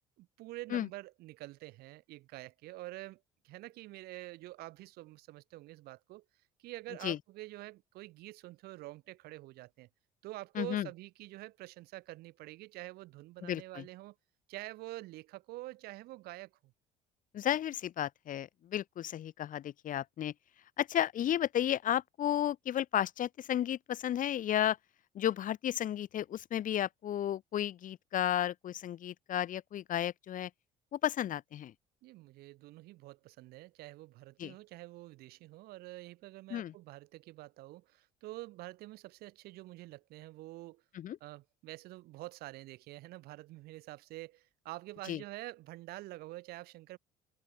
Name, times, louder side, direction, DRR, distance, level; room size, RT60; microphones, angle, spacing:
voice 1, 0.2-6.2 6.6-9.9 10.2-14.2 14.5-16.7 32.0-40.8 41.2-47.0, right 18 dB, 65° right, 3.7 m, -47 dB
voice 2, 10.6-10.9 13.4-13.8 17.3-20.3 20.8-24.8 25.2-30.5 30.9-31.7 34.4-34.5 36.5-36.7 40.9-41.2 45.1-45.2, left 11 dB, 50° left, 1.9 m, -33 dB
hypercardioid pair, 65°, 17 cm